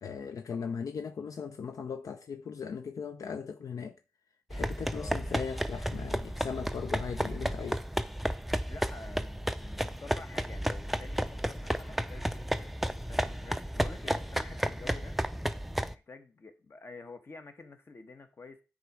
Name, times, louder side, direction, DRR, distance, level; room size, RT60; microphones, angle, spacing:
voice 1, 0.0-4.0 4.5-7.8, left 6 dB, 80° left, 0.5 m, -38 dB
sound 1, 4.5-15.9, equal, ahead, 0.4 m, -33 dB
voice 2, 8.7-15.2 15.9-18.6, left 3 dB, 45° left, 1.1 m, -49 dB
9.9 x 4.0 x 4.7 m
wide cardioid pair, 145°, 6 cm